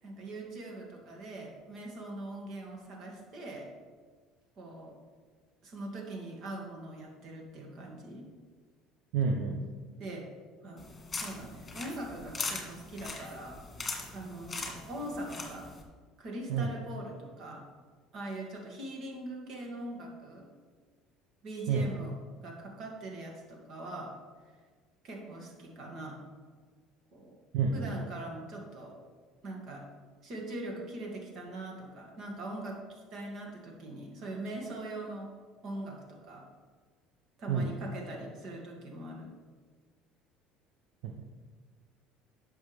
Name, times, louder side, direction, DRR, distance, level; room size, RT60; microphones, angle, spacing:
voice 1, 0.0-3.7 4.6-5.0 5.6-8.3 10.0-10.3 10.6-10.9 11.1-13.6 14.1-15.7 16.2-17.6 18.1-20.5 21.4-22.1 22.4-24.1 25.0-26.2 27.1-27.4 27.7-29.0 29.4-29.9 30.2-35.3 35.6-36.5 37.4-39.3, right 1 dB, 55° right, 0 dB, 2.3 m, -42 dB
voice 2, 9.1-9.6 16.5-16.7 21.7-21.9 27.5-27.9 37.5-37.7 41.0-41.3, right 5 dB, 80° right, 2 dB, 0.8 m, -29 dB
sound 1, 10.8-15.8, left 3 dB, 25° left, 1.8 m, -40 dB
10.5 x 6.4 x 3.5 m, 1.5 s
supercardioid pair, 100°, 0 cm